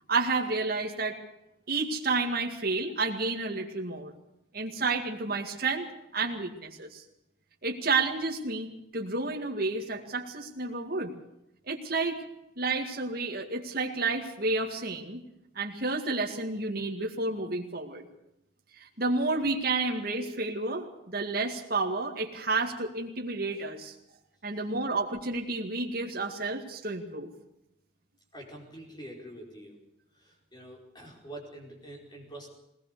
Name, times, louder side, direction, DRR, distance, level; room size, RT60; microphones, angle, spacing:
voice 1, 0.1-1.2 1.7-4.1 4.5-5.9 6.1-7.0 7.6-11.1 11.7-12.2 12.6-15.2 15.6-18.0 18.8-24.0 24.4-27.3, right 3 dB, 50° right, 1 dB, 2.2 m, -30 dB
voice 2, 28.3-29.8 30.1-32.5, right 1 dB, 20° left, 0 dB, 5.1 m, -46 dB
20.5 x 19.5 x 6.8 m, 0.85 s
head